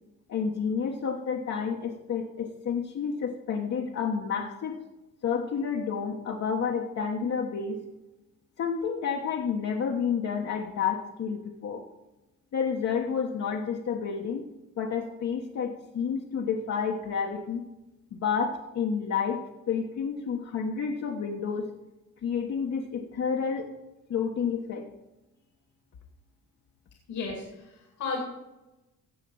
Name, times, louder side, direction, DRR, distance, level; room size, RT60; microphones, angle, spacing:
voice 1, 0.3-4.8 5.2-7.9 8.6-11.8 12.5-14.5 14.8-17.6 18.1-21.7 22.2-23.7 24.1-24.9, left 6 dB, 60° left, 1 dB, 1.3 m, -30 dB
voice 2, 27.1-28.2, left 4 dB, 75° left, 0 dB, 2.5 m, -34 dB
16.5 x 5.8 x 5.6 m, 1.0 s
cardioid pair, 90°, 30 cm